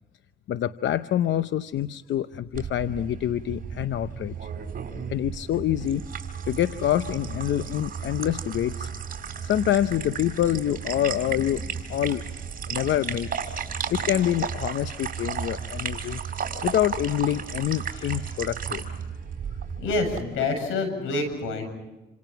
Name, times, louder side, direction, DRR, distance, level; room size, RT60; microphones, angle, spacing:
voice 1, 0.5-4.5 5.1-6.0 6.5-8.9 9.4-12.3 12.7-13.6 13.9-16.2 16.6-18.8, left 11 dB, 70° left, 12 dB, 0.8 m, -26 dB
sound 1, 2.5-20.2, right 7 dB, 45° right, 4.7 m, -34 dB
voice 2, 19.8-21.7, left 3 dB, 90° left, 7 dB, 7.8 m, -27 dB
28.5 x 27.5 x 5.9 m, 1.1 s
cardioid pair, 90°, 20 cm